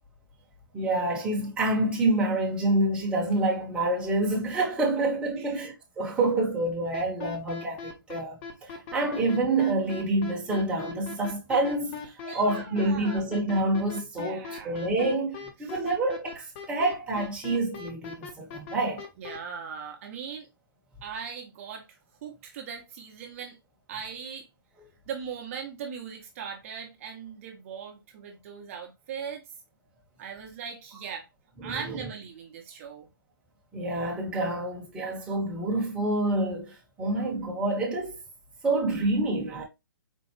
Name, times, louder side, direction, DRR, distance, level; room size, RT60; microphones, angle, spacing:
voice 1, 0.7-19.0 31.6-32.0 33.7-38.1 38.6-39.6, right 2 dB, 10° right, 0.9 m, -27 dB
sound 1, 6.9-19.4, left 5 dB, 30° left, 0.7 m, -39 dB
voice 2, 12.2-13.2 14.2-14.9 15.6-15.8 19.2-20.5 21.0-23.6 23.9-24.5 25.1-29.4 30.2-31.3 31.6-33.1, right 7 dB, 35° right, 0.8 m, -39 dB
4.3 x 2.3 x 3.0 m
hypercardioid pair, 150°, 12 cm